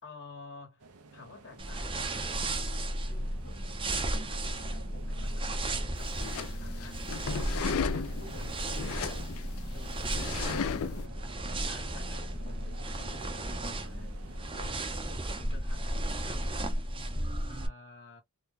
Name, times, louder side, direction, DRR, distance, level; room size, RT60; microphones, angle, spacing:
voice 1, 0.0-2.8 3.0-9.4 9.7-11.3 11.6-16.8 17.5-18.2, left 3 dB, 55° left, 1.5 m, -52 dB
sound 1, 0.8-14.9, right 3 dB, 85° right, 0.7 m, -52 dB
sound 2, 1.6-17.7, right 1 dB, 25° right, 0.6 m, -34 dB
sound 3, 6.0-11.1, left 6 dB, 70° left, 0.4 m, -36 dB
3.6 x 2.3 x 2.7 m
head